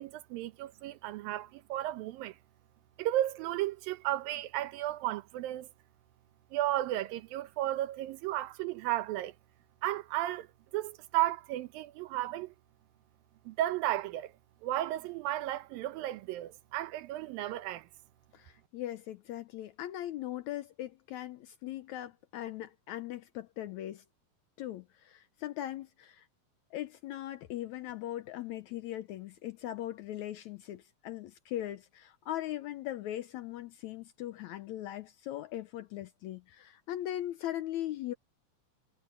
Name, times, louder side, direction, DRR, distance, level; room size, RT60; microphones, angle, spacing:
voice 1, 0.0-2.4 3.0-5.7 6.5-9.3 9.8-10.5 10.7-12.5 13.5-14.3 14.6-17.9, right 14 dB, 90° right, 2.7 m, -34 dB
voice 2, 18.3-24.0 24.6-26.3 26.7-38.1, left 13 dB, 80° left, 1.7 m, -39 dB
omnidirectional pair, 4.0 m